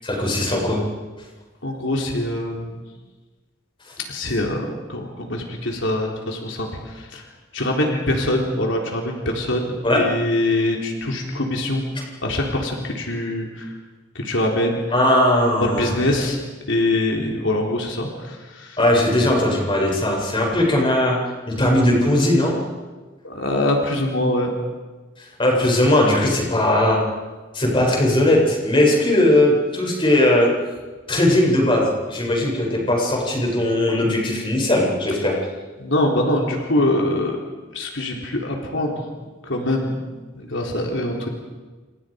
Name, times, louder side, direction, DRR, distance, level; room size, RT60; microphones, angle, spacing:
voice 1, 0.0-0.8 9.8-10.0 14.9-15.9 18.8-21.2 21.5-22.5 25.4-27.0 27.5-30.5 31.1-35.3, left 1 dB, 25° left, -2 dB, 7.7 m, -18 dB
voice 2, 1.6-2.8 4.1-7.2 7.5-11.9 12.2-13.7 14.2-14.8 15.6-16.4 16.7-18.8 23.2-24.5 35.8-37.4 37.7-40.0 40.3-41.3, left 1 dB, 90° left, 0 dB, 3.8 m, -23 dB
29.0 x 28.5 x 5.3 m, 1.3 s
head